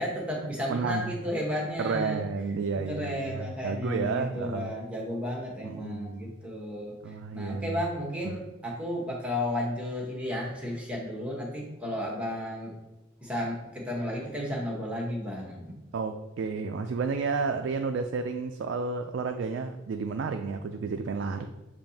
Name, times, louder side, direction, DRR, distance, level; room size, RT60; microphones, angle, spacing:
voice 1, 0.0-2.3 2.7-6.9 7.3-12.7 13.2-15.8, left 1 dB, 5° right, -3 dB, 1.0 m, -33 dB
voice 2, 0.7-1.2 1.8-4.7 5.6-6.3 7.0-7.8 8.2-8.4 15.9-21.5, right 4 dB, 60° right, 6 dB, 0.3 m, -31 dB
6.9 x 2.8 x 2.7 m, 1.0 s
head